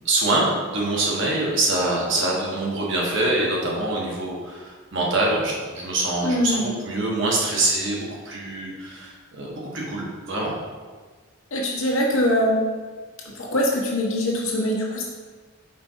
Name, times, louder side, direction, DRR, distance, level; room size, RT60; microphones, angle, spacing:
voice 1, 0.0-10.5, right 2 dB, 55° right, -3 dB, 1.4 m, -24 dB
voice 2, 6.2-6.7 11.5-12.6 13.4-15.0, left 1 dB, 65° left, -2 dB, 1.3 m, -22 dB
5.1 x 4.5 x 4.6 m, 1.4 s
head